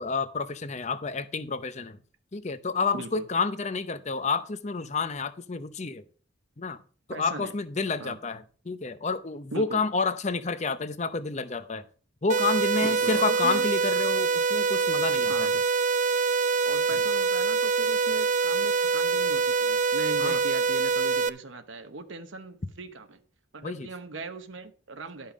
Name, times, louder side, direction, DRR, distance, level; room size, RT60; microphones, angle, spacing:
voice 1, 0.0-2.0 2.3-6.0 6.6-6.8 7.1-11.8 12.2-15.5 20.2-20.4 23.6-23.9, left 4 dB, 35° left, 0.7 m, -29 dB
voice 2, 2.9-3.2 7.1-7.5 8.0-8.2 9.5-9.8 12.8-13.7 15.3-15.6 16.6-23.2 23.5-25.3, right 3 dB, 85° right, 1.0 m, -39 dB
sound 1, 12.3-21.3, right 5 dB, 40° right, 0.4 m, -25 dB
12.0 x 5.5 x 5.1 m
head